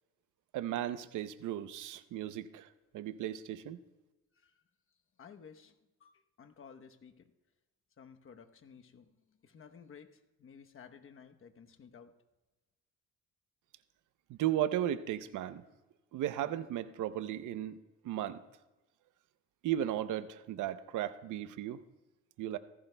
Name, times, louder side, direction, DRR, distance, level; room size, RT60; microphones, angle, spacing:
voice 1, 0.5-2.7 2.9-3.8 14.3-15.6 16.1-17.8 18.0-18.4 19.6-21.8 22.4-22.6, right 11 dB, 80° right, 12 dB, 0.7 m, -35 dB
voice 2, 5.2-7.3 8.0-12.1, left 6 dB, 45° left, 6 dB, 1.0 m, -55 dB
18.5 x 15.0 x 2.3 m, 1.1 s
cardioid pair, 90°, 30 cm